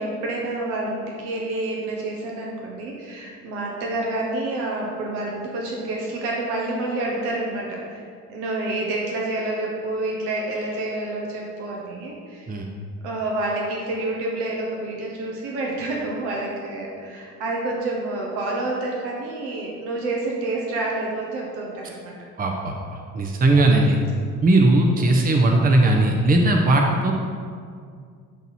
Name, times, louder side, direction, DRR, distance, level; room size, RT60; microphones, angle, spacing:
voice 1, 0.0-12.5 13.0-22.1 23.6-23.8 24.9-25.2, right 2 dB, 60° right, -2 dB, 1.3 m, -28 dB
voice 2, 22.4-22.7 23.1-24.0 24.4-27.1, right 2 dB, 20° right, 1 dB, 0.9 m, -18 dB
12.0 x 4.1 x 4.3 m, 2.1 s
figure-of-eight pair, 55°, 44 cm